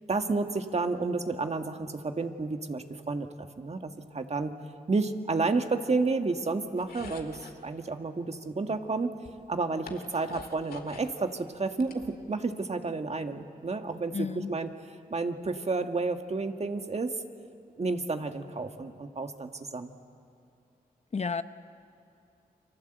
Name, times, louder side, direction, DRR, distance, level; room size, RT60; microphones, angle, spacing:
voice 1, 0.1-3.3 3.6-4.5 4.9-9.1 9.5-14.7 15.1-17.2 17.8-20.0, right 3 dB, 45° right, 6 dB, 1.9 m, -31 dB
sound 1, 6.8-7.6 8.7-8.8 9.2-11.1 11.5-12.6, left 4 dB, 70° left, 2.4 m, -47 dB
voice 2, 14.1-14.5 21.1-21.4, left 5 dB, 45° left, 11 dB, 0.9 m, -31 dB
30.0 x 24.0 x 8.1 m, 2.5 s
cardioid pair, 60°, 16 cm